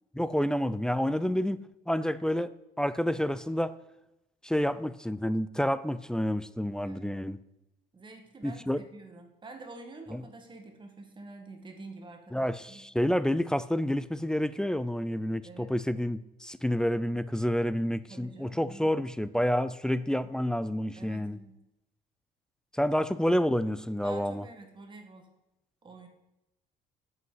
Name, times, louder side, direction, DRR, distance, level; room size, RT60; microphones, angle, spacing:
voice 1, 0.1-1.6 1.9-3.7 4.4-7.4 8.4-8.8 10.1-10.2 12.3-21.4 22.7-24.4, equal, 5° left, 15 dB, 0.5 m, -29 dB
voice 2, 7.9-12.9 15.4-15.7 18.1-18.9 20.9-21.6 24.0-25.3 25.8-26.1, right 3 dB, 30° right, 4 dB, 2.0 m, -48 dB
8.6 x 7.8 x 7.8 m, 0.90 s
cardioid pair, 110°, 17 cm